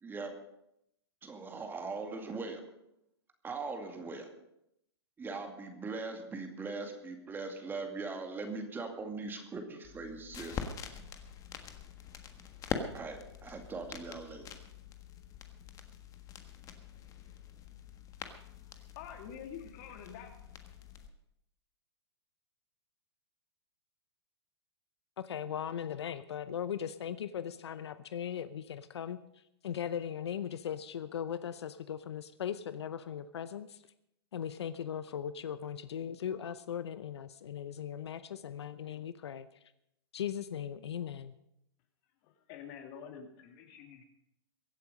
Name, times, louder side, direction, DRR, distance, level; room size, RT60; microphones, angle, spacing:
voice 1, 0.0-0.3 1.2-2.6 3.4-4.3 5.2-10.6 12.9-14.5, right 3 dB, 15° right, 4 dB, 2.3 m, -40 dB
sound 1, 9.8-21.1, left 7 dB, 25° left, 1.5 m, -44 dB
voice 2, 18.4-20.4 42.2-44.0, left 8 dB, 45° left, 5 dB, 2.4 m, -48 dB
voice 3, 25.2-29.2 29.6-33.8 34.3-39.5 40.1-41.3, left 9 dB, 75° left, 13 dB, 0.7 m, -38 dB
23.0 x 8.3 x 5.3 m, 0.79 s
hypercardioid pair, 120°, 14 cm